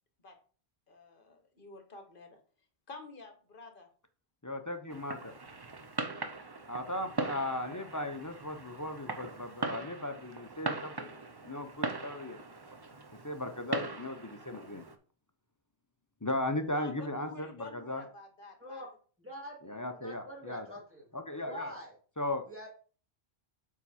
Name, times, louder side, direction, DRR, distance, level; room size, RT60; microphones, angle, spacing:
voice 1, 0.9-2.4 2.9-3.9 16.7-18.9, left 2 dB, 55° left, 6 dB, 1.4 m, -49 dB
voice 2, 4.4-5.3 6.7-11.1 11.4-12.4 13.2-14.9 16.2-18.0 19.6-20.7 21.1-21.7 22.2-22.4, left 1 dB, 20° left, 6 dB, 0.6 m, -37 dB
Fireworks, 4.9-15.0, right 3 dB, 30° right, 0.6 m, -40 dB
voice 3, 19.2-21.1 21.4-21.9 22.5-22.7, equal, 10° right, -2 dB, 2.4 m, -45 dB
7.3 x 4.7 x 4.2 m, 0.41 s
omnidirectional pair, 1.1 m